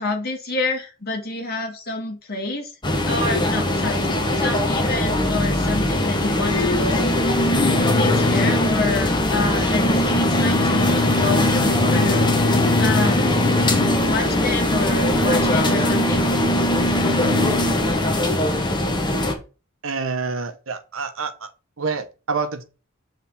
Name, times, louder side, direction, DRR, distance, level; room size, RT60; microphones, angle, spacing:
voice 1, 0.0-2.7 3.1-7.0 7.9-12.5 12.8-13.5 14.1-16.3, left 2 dB, 50° left, 2.1 m, -28 dB
sound 1, 2.8-19.3, left 1 dB, 25° left, 1.3 m, -20 dB
voice 2, 19.8-21.5 21.8-22.6, right 4 dB, 80° right, 1.1 m, -27 dB
7.3 x 3.6 x 5.6 m
head